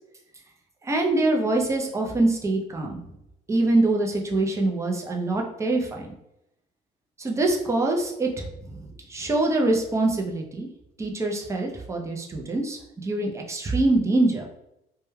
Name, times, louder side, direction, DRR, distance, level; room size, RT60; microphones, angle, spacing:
voice 1, 0.8-3.0 3.5-6.1 7.2-8.5 9.1-10.7 11.0-14.5, right 2 dB, 15° right, 1 dB, 0.5 m, -24 dB
2.2 x 2.2 x 3.1 m, 0.84 s
cardioid pair, 110°, 17 cm